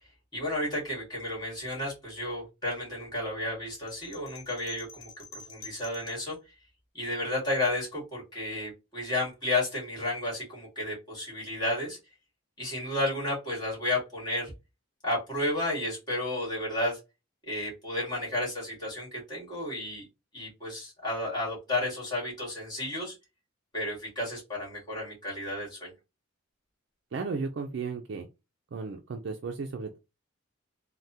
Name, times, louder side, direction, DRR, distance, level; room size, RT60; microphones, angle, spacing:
voice 1, 0.3-6.4 6.9-12.0 12.6-14.5 15.0-17.0 17.4-20.1 20.3-23.2 23.7-25.9, left 1 dB, 20° left, -5 dB, 1.7 m, -32 dB
sound 1, 3.9-6.3, left 5 dB, 70° left, 0.9 m, -48 dB
voice 2, 27.1-28.3 28.7-30.0, right 4 dB, 55° right, 4 dB, 0.3 m, -34 dB
3.3 x 2.1 x 2.7 m, 0.26 s
head